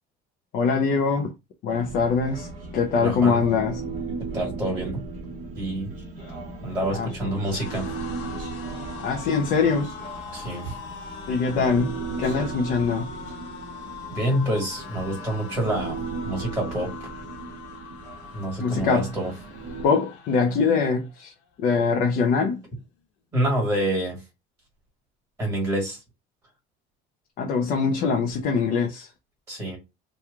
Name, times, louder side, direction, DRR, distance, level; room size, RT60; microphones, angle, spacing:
voice 1, 0.5-1.3 1.6-3.8 6.9-7.3 9.0-9.9 11.3-13.1 18.6-19.1 19.8-21.3 21.6-22.6 27.4-29.1, left 5 dB, 45° left, 0.6 m, -23 dB
Human voice, 1.7-19.9, right 4 dB, 40° right, 1.3 m, -37 dB
voice 2, 3.0-3.4 4.3-5.0 5.5-5.9 6.6-7.8 10.3-10.8 14.1-16.0 16.2-16.9 18.3-19.3 23.3-24.2 25.4-26.0 29.5-29.8, right 1 dB, 15° right, 1.7 m, -27 dB
sound 1, 6.0-21.2 21.6-21.8 22.1-22.9, left 5 dB, 70° left, 1.1 m, -42 dB
3.0 x 2.3 x 3.5 m
cardioid pair, 175°, 20 cm